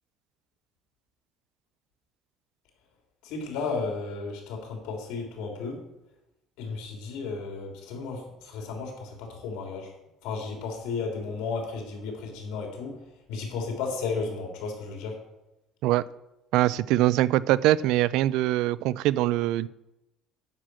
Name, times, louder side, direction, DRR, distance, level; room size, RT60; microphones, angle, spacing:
voice 1, 3.2-5.8 6.6-9.9 10.2-13.0 13.3-15.2, left 4 dB, 90° left, 2 dB, 3.2 m, -33 dB
voice 2, 16.5-19.7, right 15 dB, 80° right, 19 dB, 0.4 m, -23 dB
9.7 x 5.8 x 7.6 m, 0.93 s
cardioid pair, 135°, 0 cm